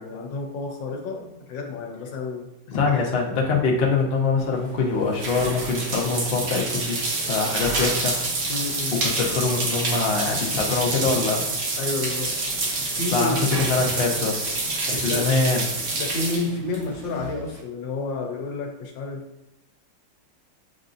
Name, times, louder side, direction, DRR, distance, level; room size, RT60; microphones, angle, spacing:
voice 1, 0.0-2.5 2.8-3.1 8.5-9.0 11.8-12.3 12.9-13.5 14.9-15.3 15.9-19.2, left 3 dB, 85° left, 2 dB, 1.5 m, -30 dB
voice 2, 2.7-8.2 9.0-11.4 13.1-14.4 14.9-15.7, left 4 dB, 45° left, -2 dB, 0.8 m, -24 dB
sound 1, 4.4-17.6, right 2 dB, 55° right, 1.2 m, -28 dB
7.5 x 2.6 x 2.5 m, 0.86 s
omnidirectional pair, 2.0 m